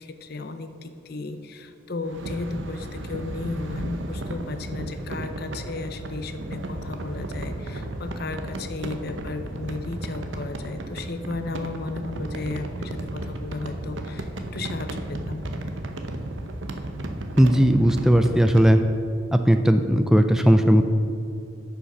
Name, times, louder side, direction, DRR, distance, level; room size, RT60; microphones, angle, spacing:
voice 1, 0.0-15.4, left 3 dB, 50° left, 9 dB, 0.6 m, -34 dB
sound 1, 2.0-18.7, right 1 dB, 65° right, 0.8 m, -34 dB
voice 2, 17.4-18.8 19.3-20.8, equal, ahead, 7 dB, 0.3 m, -17 dB
9.7 x 5.8 x 6.1 m, 2.6 s
head